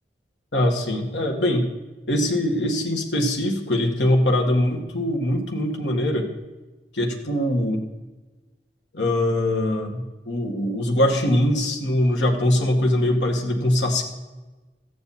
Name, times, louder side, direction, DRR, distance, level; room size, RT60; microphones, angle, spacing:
voice 1, 0.5-1.7 2.1-6.3 6.9-7.8 8.9-14.0, left 1 dB, 80° left, 1 dB, 1.8 m, -22 dB
13.5 x 9.4 x 4.2 m, 1.2 s
head